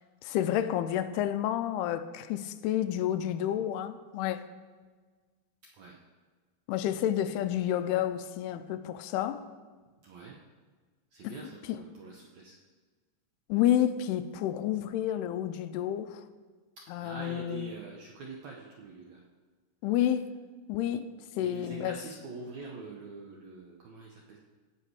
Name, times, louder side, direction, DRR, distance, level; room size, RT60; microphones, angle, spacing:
voice 1, 0.2-4.5 6.7-9.5 11.2-11.3 11.7-11.8 13.5-16.2 16.9-17.7 19.8-20.3 20.7-21.1 21.4-22.0, left 11 dB, 90° left, 2.6 m, -30 dB
voice 2, 10.0-10.4 11.1-12.5 17.0-19.2 21.4-24.4, right 3 dB, 75° right, 1.7 m, -44 dB
17.5 x 5.9 x 4.7 m
omnidirectional pair, 4.5 m